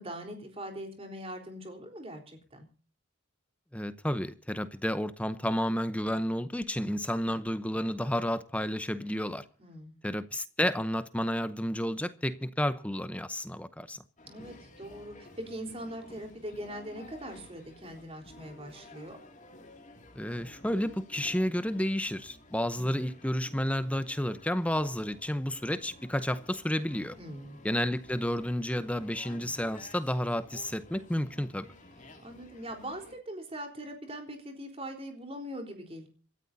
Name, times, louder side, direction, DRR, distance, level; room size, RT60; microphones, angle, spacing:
voice 1, 0.0-2.7 9.6-10.0 14.2-19.2 22.7-23.0 27.2-27.6 32.2-36.1, right 1 dB, 25° right, 3.8 m, -42 dB
voice 2, 3.7-9.4 10.0-14.0 20.1-27.2 27.6-31.7, equal, 5° left, 0.7 m, -31 dB
sound 1, 14.2-33.1, left 1 dB, 35° left, 2.5 m, -53 dB
27.0 x 13.5 x 2.7 m
head